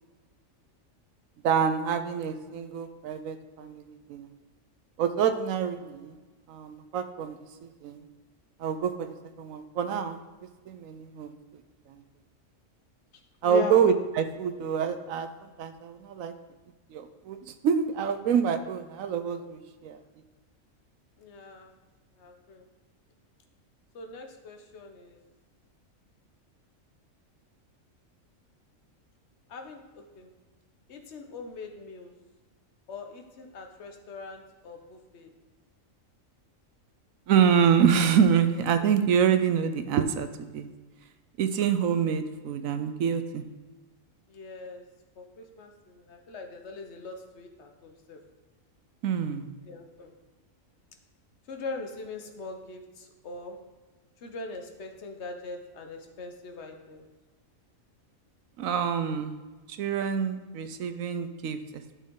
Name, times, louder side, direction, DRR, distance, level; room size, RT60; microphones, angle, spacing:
voice 1, 1.4-4.3 5.0-6.2 6.5-7.4 7.8-8.0 8.6-10.2 10.7-11.3 11.9-12.0 13.4-15.3 15.6-16.3 16.9-20.0 37.3-40.7 41.4-43.4 49.0-49.5 58.6-59.3 59.7-61.9, right 7 dB, 85° right, 10 dB, 1.1 m, -26 dB
voice 2, 13.4-13.9 21.2-21.7 22.2-22.6 23.9-25.2 29.5-30.3 30.9-32.2 32.9-35.3 44.3-44.8 45.2-48.2 49.7-50.1 51.5-53.6 54.2-57.1, left 4 dB, 60° left, 4 dB, 1.2 m, -41 dB
10.5 x 6.3 x 3.8 m, 1.3 s
omnidirectional pair, 1.4 m